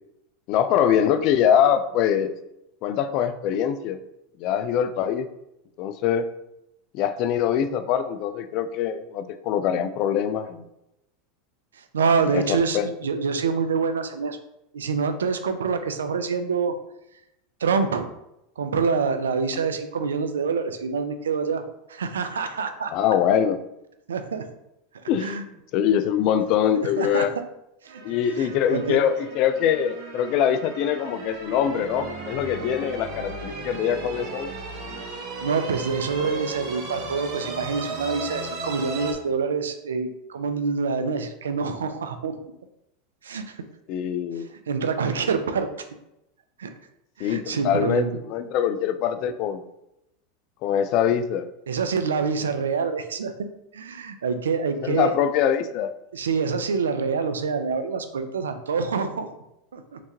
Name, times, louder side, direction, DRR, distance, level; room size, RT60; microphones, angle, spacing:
voice 1, 0.5-2.3 2.8-4.0 4.4-5.3 5.8-6.3 6.9-10.6 12.3-12.9 22.9-23.6 25.1-25.4 25.7-27.4 28.0-34.5 43.9-44.5 47.2-49.7 50.6-51.4 54.8-55.9, left 9 dB, 55° left, 11 dB, 0.3 m, -23 dB
voice 2, 11.9-14.4 14.7-16.7 17.6-18.1 18.6-21.6 21.9-22.9 24.1-24.4 25.2-25.4 27.0-27.3 27.8-28.0 28.4-29.0 35.4-42.3 43.2-43.6 44.7-45.7 46.6-46.7 47.2-48.2 51.7-53.3 53.7-55.1 56.1-59.3 59.7-60.0, right 5 dB, 90° right, 8 dB, 0.4 m, -26 dB
sound 1, 27.9-39.1, right 3 dB, 55° right, 0.8 m, -36 dB
3.3 x 3.0 x 2.9 m, 0.86 s
hypercardioid pair, 100°, 0 cm